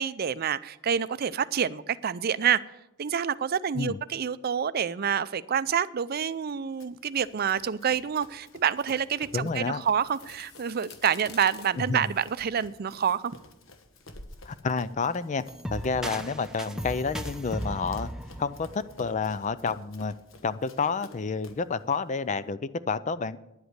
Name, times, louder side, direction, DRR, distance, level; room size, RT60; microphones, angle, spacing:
voice 1, 0.0-2.6 3.0-13.4, right 8 dB, 50° right, 0.5 m, -27 dB
Run, 6.8-21.7, left 2 dB, 75° left, 1.2 m, -52 dB
voice 2, 9.3-9.8 11.9-12.1 14.5-15.4 15.7-18.1 18.4-20.1 20.4-23.4, left 4 dB, 35° left, 0.4 m, -29 dB
sound 1, 9.5-16.1, left 4 dB, 55° left, 1.2 m, -50 dB
sound 2, 15.5-19.4, equal, 5° right, 0.8 m, -37 dB
10.0 x 8.1 x 8.0 m
head